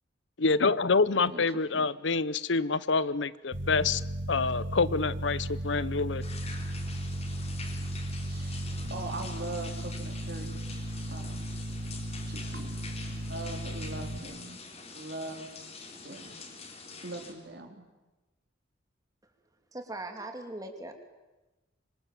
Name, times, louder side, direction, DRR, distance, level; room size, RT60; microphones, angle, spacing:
voice 1, 0.4-4.0 4.3-6.2, left 4 dB, 70° left, 17 dB, 0.8 m, -27 dB
sound 1, 3.5-14.2, right 1 dB, 80° right, 3.1 m, -35 dB
sound 2, 6.2-17.3, left 4 dB, 35° left, 4.3 m, -46 dB
voice 2, 8.2-10.6 11.1-11.5 12.3-12.8 13.1-14.6 14.9-15.6 16.0-16.4 17.0-17.8, right 2 dB, 60° right, 3 dB, 4.1 m, -41 dB
voice 3, 19.7-20.9, right 2 dB, 20° right, 5 dB, 3.0 m, -39 dB
26.0 x 25.0 x 7.7 m, 1.1 s
head